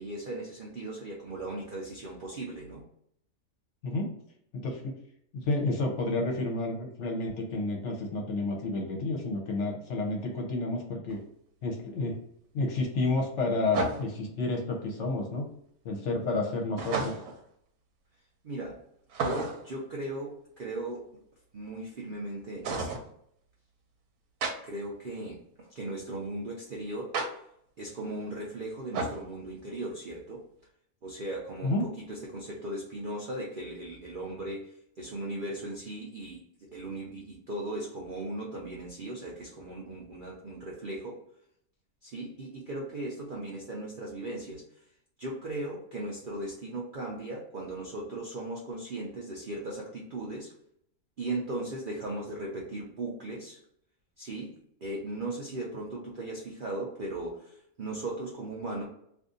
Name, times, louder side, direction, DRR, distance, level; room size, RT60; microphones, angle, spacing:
voice 1, 0.0-2.8 18.4-18.8 19.2-21.1 21.5-23.0 24.6-25.4 25.7-27.4 27.8-30.4 31.0-36.4 36.7-41.2 42.0-44.9 45.2-50.5 51.2-53.6 54.2-58.8, right 2 dB, 60° right, -3 dB, 0.5 m, -37 dB
voice 2, 4.5-4.9 5.3-11.2 11.6-12.2 12.5-15.4 15.8-17.1 31.6-31.9, left 2 dB, 60° left, 1 dB, 0.9 m, -30 dB
sound 1, 11.1-11.2 13.7-14.3 16.8-17.4 19.1-19.7 22.6-23.1 24.4-24.5 27.1-27.3 28.9-29.2, right 3 dB, 80° right, 1.1 m, -31 dB
2.6 x 2.5 x 3.7 m, 0.70 s
omnidirectional pair, 1.5 m